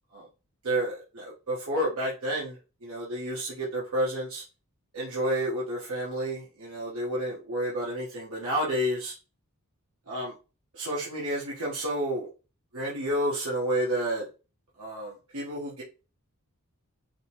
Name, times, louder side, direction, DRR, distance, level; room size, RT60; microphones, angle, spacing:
voice 1, 0.6-2.6 2.8-4.4 4.9-9.1 10.1-10.3 10.7-12.3 12.7-14.2 14.8-15.8, right 1 dB, 70° right, -6 dB, 1.2 m, -30 dB
4.9 x 2.3 x 2.9 m, 0.32 s
head